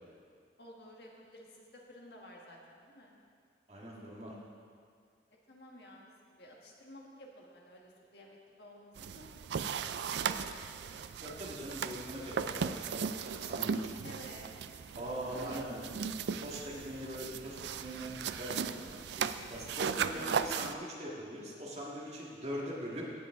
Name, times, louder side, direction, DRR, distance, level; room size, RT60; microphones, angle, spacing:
voice 1, 0.6-3.2 5.5-6.1 6.4-9.3 9.8-10.6 14.0-14.5 15.3-16.1 16.7-16.9 20.1-20.7, equal, 65° left, -1 dB, 1.5 m, -52 dB
voice 2, 3.7-4.3 11.2-13.0 13.4-14.1 15.0-15.8 16.4-23.1, equal, 35° right, -4 dB, 1.8 m, -42 dB
sound 1, 8.9-20.7, right 6 dB, 70° right, 0.4 m, -37 dB
17.0 x 7.0 x 3.7 m, 2.2 s
head